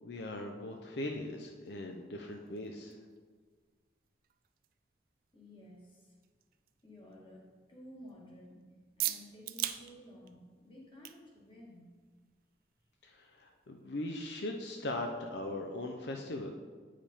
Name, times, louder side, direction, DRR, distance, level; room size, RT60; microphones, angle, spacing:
voice 1, 0.0-3.0 13.0-16.5, left 1 dB, 75° left, 3 dB, 0.6 m, -39 dB
sound 1, 0.7-16.0, right 14 dB, 50° right, 0.3 m, -47 dB
voice 2, 5.3-6.1 6.8-11.9, equal, 30° left, -2 dB, 1.5 m, -54 dB
8.8 x 5.0 x 4.2 m, 1.5 s
head